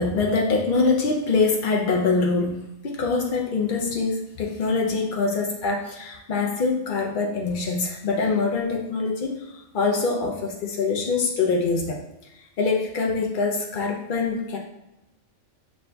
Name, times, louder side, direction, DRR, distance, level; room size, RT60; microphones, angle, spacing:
voice 1, 0.0-12.0 12.6-14.6, left 4 dB, 85° left, 0 dB, 0.4 m, -24 dB
6.3 x 2.6 x 2.2 m, 0.91 s
omnidirectional pair, 1.5 m